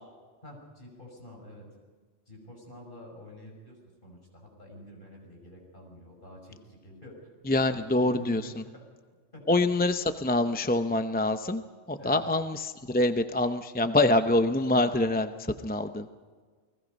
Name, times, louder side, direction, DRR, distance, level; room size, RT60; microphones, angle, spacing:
voice 1, 0.4-1.7 2.3-7.2 7.7-8.8 9.3-9.6 12.0-12.3 14.6-14.7, left 1 dB, 45° left, 0 dB, 6.2 m, -48 dB
voice 2, 7.5-8.4 9.5-11.6 11.9-15.3 15.6-16.1, left 2 dB, 10° left, 8 dB, 0.5 m, -25 dB
29.5 x 20.0 x 5.3 m, 1.5 s
omnidirectional pair, 1.2 m